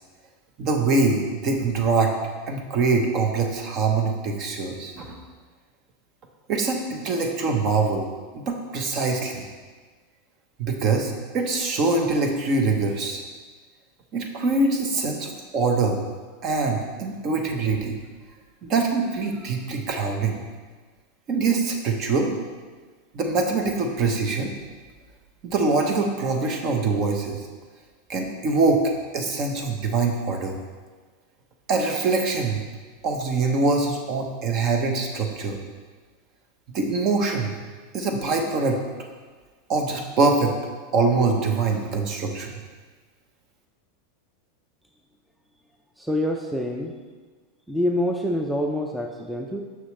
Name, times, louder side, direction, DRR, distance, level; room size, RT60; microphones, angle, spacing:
voice 1, 0.6-2.1 2.5-5.2 6.5-8.0 8.3-9.5 10.6-13.2 14.1-16.0 16.4-17.9 18.6-20.4 21.3-22.3 23.1-24.5 25.4-27.4 28.1-28.8 29.1-30.6 31.7-32.6 33.0-35.6 36.7-37.5 37.9-38.8 39.7-40.6 40.9-42.6, right 3 dB, 45° right, 3 dB, 1.0 m, -23 dB
voice 2, 46.0-46.9 47.7-49.6, left 1 dB, ahead, 2 dB, 0.5 m, -26 dB
6.3 x 6.1 x 3.3 m, 1.4 s
supercardioid pair, 130°, 0 cm